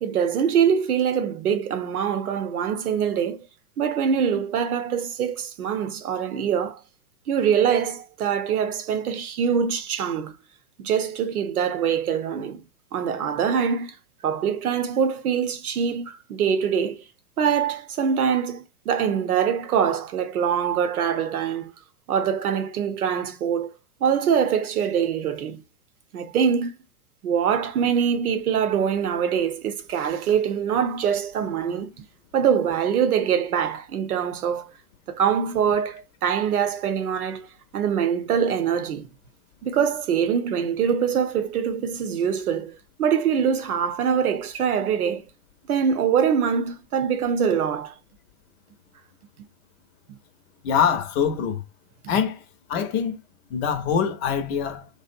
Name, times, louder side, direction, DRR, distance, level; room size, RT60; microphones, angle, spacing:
voice 1, 0.0-3.5 3.8-6.8 7.3-10.3 10.8-12.6 12.9-13.9 14.2-17.0 17.4-21.7 22.1-23.7 24.0-25.6 26.1-26.7 27.2-31.9 32.3-34.7 35.1-37.5 37.7-39.1 39.6-45.3 45.7-47.9, right 7 dB, 85° right, 0.7 m, -24 dB
voice 2, 50.6-51.6 52.1-52.4 52.7-53.2 53.5-54.9, left 7 dB, 45° left, 0.7 m, -24 dB
2.7 x 2.1 x 2.5 m
hypercardioid pair, 120°, 44 cm